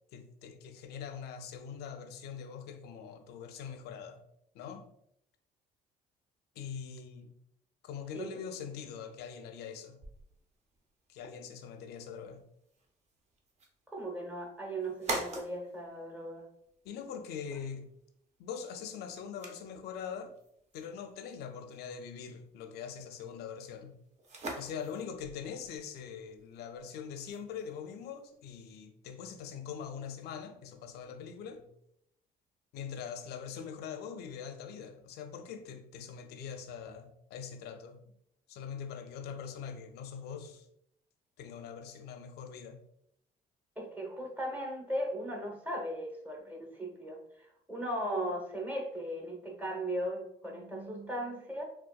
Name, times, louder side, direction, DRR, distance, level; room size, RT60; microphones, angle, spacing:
voice 1, 0.1-4.2 4.5-4.9 6.6-7.3 7.8-10.0 11.1-12.4 16.8-17.9 18.4-20.3 20.7-24.0 24.6-31.7 32.7-38.0 38.5-40.7 41.4-42.8, left 7 dB, 75° left, 0.4 m, -43 dB
sound 1, 10.0-28.4, right 2 dB, 40° right, 0.6 m, -47 dB
voice 2, 13.9-16.5 43.8-51.6, right 1 dB, 10° right, 0.9 m, -37 dB
3.6 x 2.3 x 2.2 m
cardioid pair, 110°, 17 cm